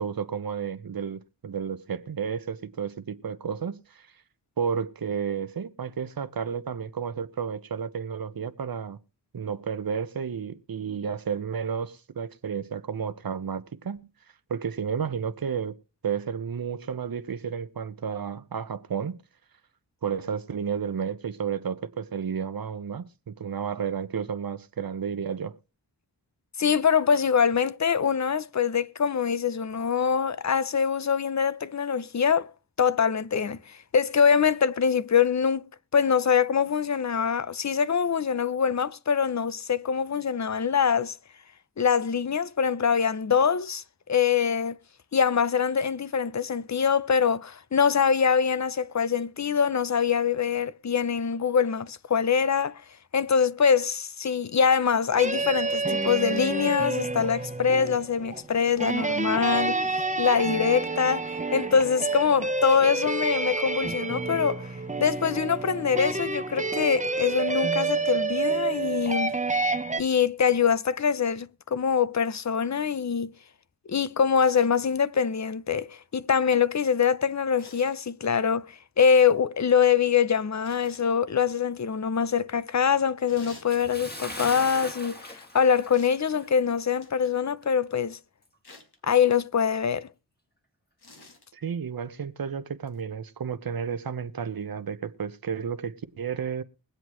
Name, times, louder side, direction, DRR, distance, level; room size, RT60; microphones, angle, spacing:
voice 1, 0.0-4.1 4.6-9.0 9.3-14.0 14.5-15.8 16.0-19.2 20.0-25.6 91.5-96.6, right 7 dB, 55° right, 0.9 m, -32 dB
voice 2, 26.6-32.5 32.8-35.6 35.9-41.2 41.8-44.8 45.1-52.8 53.1-64.7 65.0-69.3 70.0-73.3 73.9-88.2 89.0-90.1, left 6 dB, 40° left, 0.6 m, -24 dB
sound 1, 55.1-70.0, right 3 dB, 20° right, 0.8 m, -29 dB
sound 2, 74.4-74.7 77.6-78.0 80.6-81.1 83.3-83.7 85.9-86.2 87.0-87.4 88.6-89.0 91.0-91.5 92.9-93.0, left 3 dB, 65° left, 2.1 m, -50 dB
Bathtub (filling or washing) / Splash splatter, 83.7-86.6 86.9-87.1 87.6-87.7, left 1 dB, 25° left, 2.2 m, -39 dB
22.0 x 8.0 x 3.1 m
cardioid pair, 50°, 42 cm